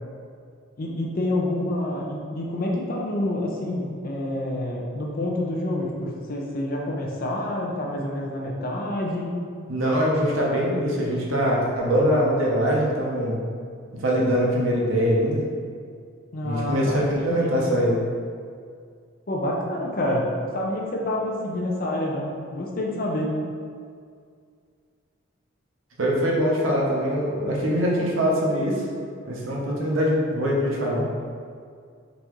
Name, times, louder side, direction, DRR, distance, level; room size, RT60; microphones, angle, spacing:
voice 1, 0.8-9.3 16.3-17.5 19.3-20.3 20.5-23.3, left 1 dB, 45° left, -1 dB, 0.6 m, -28 dB
voice 2, 9.7-13.4 13.9-15.4 16.4-18.0 26.0-28.8 29.2-31.1, equal, 75° right, -3 dB, 0.8 m, -23 dB
4.0 x 3.5 x 3.0 m, 2.2 s
head